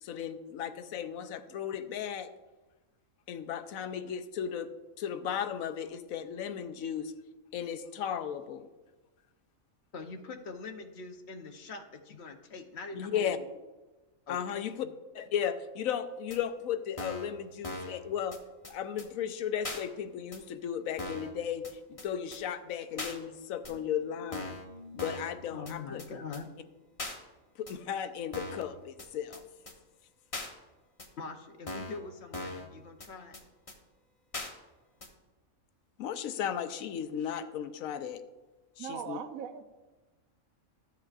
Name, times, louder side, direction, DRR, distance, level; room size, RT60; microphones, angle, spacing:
voice 1, 0.0-2.3 3.3-4.7 5.0-7.1 7.5-8.7 12.9-13.4 14.3-14.9 15.1-18.4 18.7-21.6 21.9-24.6 24.9-26.0 27.6-29.4 36.0-38.2 38.8-39.2, left 8 dB, 85° left, 11 dB, 1.0 m, -35 dB
voice 2, 9.9-13.4 14.3-14.4 14.8-14.9 25.5-26.5 31.2-33.4, left 4 dB, 55° left, 5 dB, 1.0 m, -43 dB
sound 1, 16.3-16.4 17.0-17.3 17.6-18.0 18.3-18.4 18.6-18.7 19.0-19.1 19.6-19.8 20.3-20.4 21.0-21.3 21.6-21.7 22.0-22.1 22.3-22.4 23.0-23.2 23.7-23.8 24.3-24.7 25.0-25.3 25.7-25.8 26.0-26.1 26.3-26.4 27.0-27.2 27.7-27.8 28.3-28.7 29.0-29.1 29.3-29.4 29.7-29.8 30.3-30.5 31.0-31.1 31.7-32.0 32.3-32.7 33.0-33.1 33.3-33.4 33.7-33.8 34.3-34.5 35.0-35.1, left 2 dB, 30° left, 1.0 m, -39 dB
sound 2, 23.6-27.0, left 3 dB, 45° right, 3.2 m, -56 dB
voice 3, 38.8-39.6, right 8 dB, 80° right, 9 dB, 1.1 m, -39 dB
13.5 x 7.9 x 2.4 m, 1.2 s
omnidirectional pair, 1.4 m